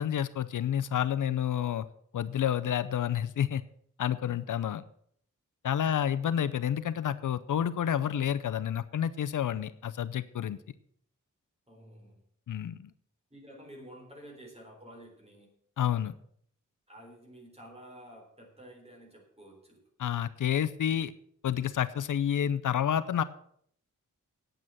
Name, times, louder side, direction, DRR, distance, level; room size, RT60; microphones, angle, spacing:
voice 1, 0.0-1.9 2.1-3.6 4.0-4.8 5.6-10.6 12.5-12.9 15.8-16.1 20.0-21.1 21.4-23.2, left 9 dB, 75° left, 14 dB, 0.6 m, -29 dB
voice 2, 11.7-12.2 13.3-15.5 16.9-19.8, equal, 20° right, 0 dB, 4.0 m, -51 dB
9.1 x 8.6 x 7.8 m, 0.65 s
wide cardioid pair, 160°, 32 cm